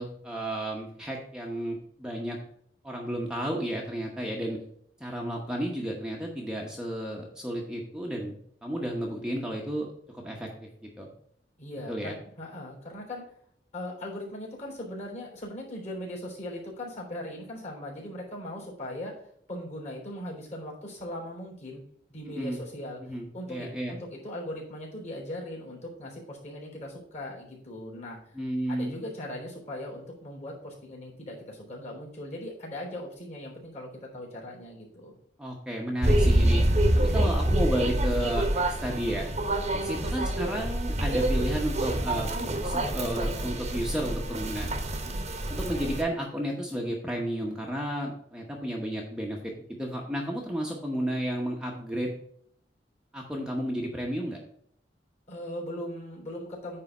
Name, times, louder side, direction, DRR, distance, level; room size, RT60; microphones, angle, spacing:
voice 1, 0.0-2.4 2.8-4.6 5.0-8.3 8.6-9.9 10.1-10.5 11.0-11.1 11.9-12.1 22.3-22.6 23.0-24.0 28.3-29.0 35.4-36.6 36.9-39.4 39.8-44.7 45.5-52.1 53.1-54.4, right 1 dB, 5° right, -1 dB, 1.0 m, -32 dB
voice 2, 11.6-13.2 13.7-19.1 19.5-21.8 22.1-28.4 28.7-35.1 55.3-56.8, left 1 dB, 40° left, -1 dB, 3.5 m, -39 dB
sound 1, 36.0-46.0, right 1 dB, 40° right, 1.0 m, -26 dB
9.5 x 3.4 x 6.0 m, 0.65 s
head